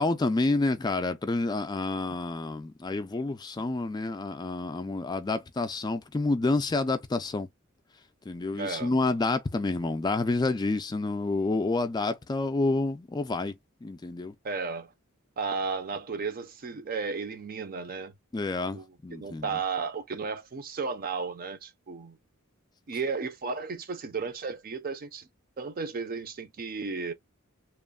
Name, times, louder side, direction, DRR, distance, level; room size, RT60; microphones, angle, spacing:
voice 1, 0.0-7.5 8.3-13.5 13.8-14.3 18.3-19.5, left 3 dB, 20° left, 0.3 m, -29 dB
voice 2, 8.5-8.9 14.4-14.9 15.4-18.1 18.7-22.2 22.9-25.3 25.6-27.1, right 4 dB, 45° right, 0.5 m, -34 dB
3.0 x 2.0 x 2.2 m
head